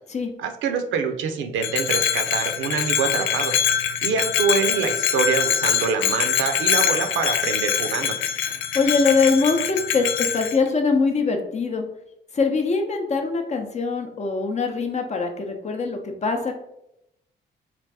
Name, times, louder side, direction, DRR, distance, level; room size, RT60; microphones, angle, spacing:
voice 1, 0.4-3.5 4.0-8.2, right 6 dB, 75° right, 6 dB, 0.6 m, -25 dB
Bell, 1.6-10.6, left 9 dB, 80° left, 0.4 m, -24 dB
voice 2, 8.7-11.8 12.3-16.5, left 4 dB, 35° left, 4 dB, 0.6 m, -23 dB
3.3 x 2.5 x 3.3 m, 0.80 s
cardioid pair, 90°, 20 cm